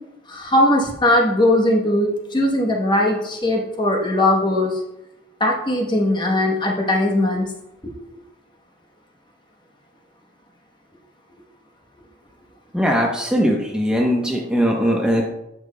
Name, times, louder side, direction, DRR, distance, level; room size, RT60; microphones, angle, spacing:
voice 1, 0.3-4.8 5.4-7.5 7.8-7.9, left 1 dB, 25° left, 1 dB, 1.0 m, -19 dB
voice 2, 12.7-15.3, equal, 5° right, -1 dB, 0.8 m, -20 dB
10.5 x 7.1 x 2.2 m, 0.89 s
head